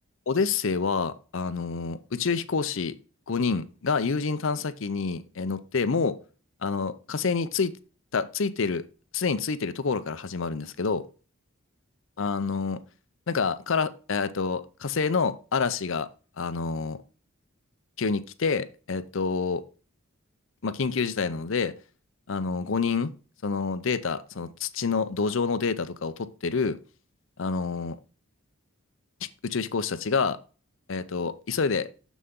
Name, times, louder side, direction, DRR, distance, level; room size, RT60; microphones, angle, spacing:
voice 1, 0.3-2.9 3.3-6.2 6.6-7.7 8.1-8.8 9.1-11.0 12.2-12.8 13.3-16.1 16.4-17.0 18.0-19.6 20.6-21.7 22.3-23.1 23.4-26.8 27.4-28.0 29.4-30.4 30.9-31.8, left 5 dB, 70° left, 13 dB, 0.6 m, -27 dB
6.8 x 6.2 x 3.6 m, 0.36 s
head